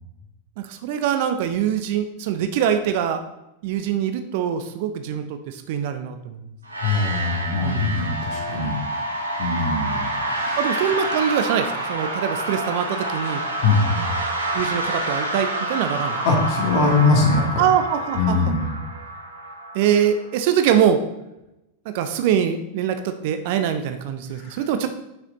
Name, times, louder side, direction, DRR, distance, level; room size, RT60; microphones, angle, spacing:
voice 1, 0.6-3.2 3.6-6.4 7.6-8.0 9.9-10.0 10.6-13.4 14.5-16.2 17.6-18.5 19.7-21.0 21.9-24.9, right 9 dB, 50° right, 9 dB, 0.5 m, -23 dB
sound 1, 6.6-20.4, right 1 dB, 80° right, 1.4 m, -28 dB
voice 2, 6.8-8.8 9.4-10.6 13.6-14.1 16.2-17.6 18.1-18.7 24.3-24.6, left 3 dB, 45° left, -1 dB, 2.0 m, -22 dB
6.8 x 5.8 x 3.9 m, 0.92 s
figure-of-eight pair, 90°, 0 cm